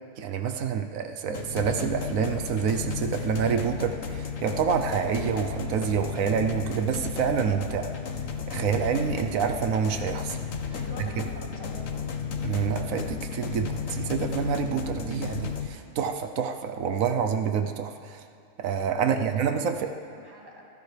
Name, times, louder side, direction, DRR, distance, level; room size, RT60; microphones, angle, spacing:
voice 1, 0.2-8.0 8.5-10.4 11.2-11.3 12.4-18.2 18.6-19.9, right 7 dB, 90° right, 6 dB, 1.2 m, -27 dB
sound 1, 1.3-15.7, left 6 dB, 75° left, 1.4 m, -33 dB
voice 2, 10.7-12.1 19.0-20.6, equal, 15° right, -3 dB, 2.3 m, -46 dB
25.0 x 15.0 x 3.3 m, 2.5 s
omnidirectional pair, 1.4 m